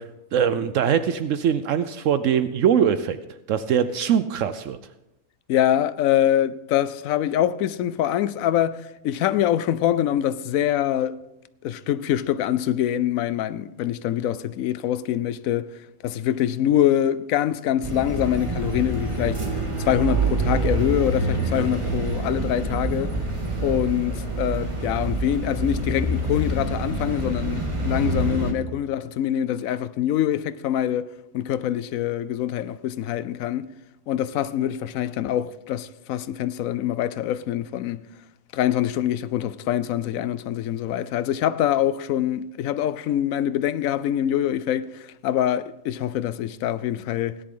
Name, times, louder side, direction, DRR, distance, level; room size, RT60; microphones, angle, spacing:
voice 1, 0.3-3.2 3.5-4.8, right 8 dB, 70° right, 0.9 m, -22 dB
voice 2, 5.5-11.2 11.6-15.7 16.0-23.1 23.6-33.7 34.1-38.1 38.5-47.4, left 11 dB, 80° left, 1.0 m, -24 dB
sound 1, 17.8-28.5, right 2 dB, 25° right, 1.6 m, -26 dB
17.0 x 10.5 x 3.7 m
omnidirectional pair, 1.4 m